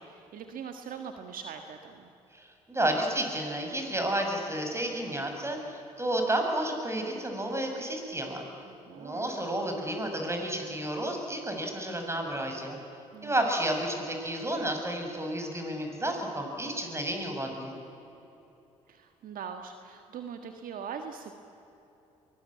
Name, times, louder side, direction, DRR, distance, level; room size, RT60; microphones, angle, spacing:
voice 1, 0.0-2.1 8.6-9.3 13.1-13.4 18.9-21.3, right 7 dB, 60° right, 6 dB, 1.6 m, -42 dB
voice 2, 2.3-8.4 8.9-12.8 13.2-17.7, right 1 dB, 15° right, 3 dB, 6.5 m, -31 dB
23.0 x 20.5 x 8.7 m, 3.0 s
hypercardioid pair, 55°, 16 cm